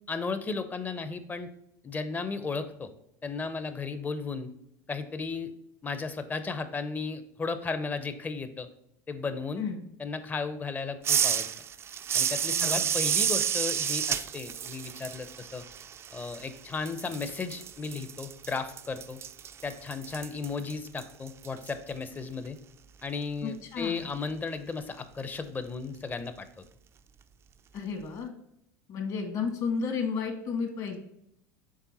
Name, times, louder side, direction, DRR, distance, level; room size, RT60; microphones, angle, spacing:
voice 1, 0.1-1.5 1.8-2.9 3.2-4.5 4.9-5.5 5.8-8.7 9.1-9.6 10.0-11.5 12.1-15.6 16.1-19.2 19.6-22.6 23.0-26.5, left 4 dB, 20° left, 11 dB, 0.6 m, -35 dB
sound 1, 11.0-16.6 16.9-21.7, right 8 dB, 30° right, 0.3 m, -30 dB
voice 2, 12.5-12.9 23.4-24.1 27.7-28.3 28.9-31.0, left 5 dB, 45° left, 4 dB, 1.5 m, -32 dB
7.3 x 3.4 x 4.1 m, 0.78 s
supercardioid pair, 105°, 9 cm